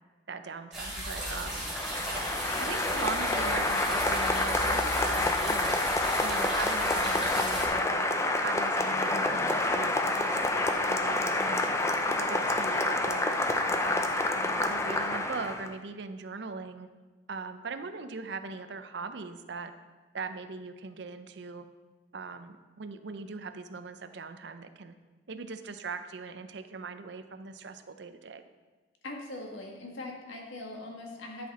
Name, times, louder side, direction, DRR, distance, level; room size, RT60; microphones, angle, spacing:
voice 1, 0.3-1.6 2.6-5.8 6.2-8.1 8.4-11.7 12.1-13.4 13.8-16.9 17.3-19.7 20.1-21.7 22.1-24.9 25.3-28.5, right 4 dB, 60° right, 9 dB, 0.5 m, -40 dB
sound 1, 0.7-7.7, right 1 dB, ahead, 2.4 m, -36 dB
Applause, 1.3-15.7, left 2 dB, 15° left, 0.4 m, -28 dB
voice 2, 29.0-31.5, left 2 dB, 75° left, 1 dB, 1.5 m, -41 dB
11.0 x 5.8 x 4.2 m, 1.3 s
head